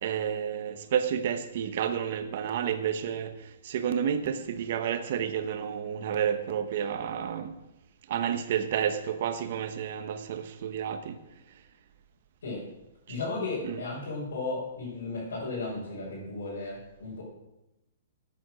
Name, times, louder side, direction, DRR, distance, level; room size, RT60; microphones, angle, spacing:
voice 1, 0.0-7.5 8.1-11.2 13.1-13.2 13.6-13.8, right 8 dB, 40° right, 9 dB, 1.1 m, -30 dB
voice 2, 13.1-17.2, left 3 dB, 85° left, -8 dB, 6.2 m, -35 dB
13.0 x 9.0 x 6.3 m, 0.94 s
hypercardioid pair, 180°, 0 cm